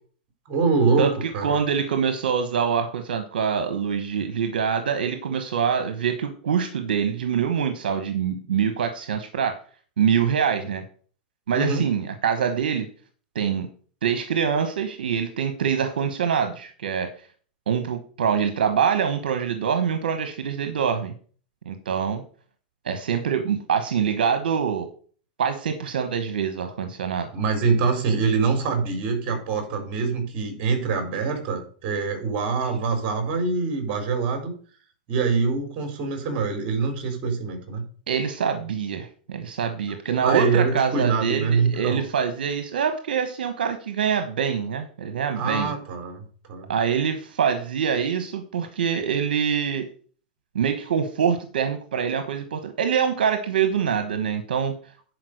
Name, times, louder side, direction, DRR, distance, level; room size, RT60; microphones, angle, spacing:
voice 1, 0.5-1.6 11.5-11.9 27.3-34.5 35.1-37.8 40.2-42.0 45.3-46.2 46.5-46.7, right 4 dB, 45° right, 5 dB, 4.0 m, -24 dB
voice 2, 1.0-9.6 10.0-10.8 11.5-12.9 13.3-13.7 14.0-17.1 17.7-21.1 21.6-22.2 22.8-24.9 25.4-27.3 38.1-45.7 46.7-49.9 50.5-54.7, right 7 dB, 85° right, 8 dB, 1.2 m, -25 dB
10.5 x 5.0 x 6.4 m, 0.43 s
hypercardioid pair, 125°, 5 cm